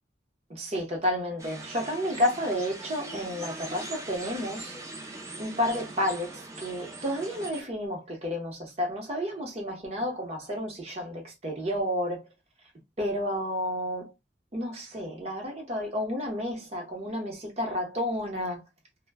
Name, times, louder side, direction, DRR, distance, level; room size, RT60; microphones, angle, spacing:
voice 1, 0.5-4.8 5.4-12.2 13.0-14.1 14.5-18.6, left 1 dB, 35° right, 0.8 m, -31 dB
sound 1, 1.4-7.6, right 2 dB, 15° right, 0.5 m, -41 dB
2.1 x 2.1 x 3.3 m
head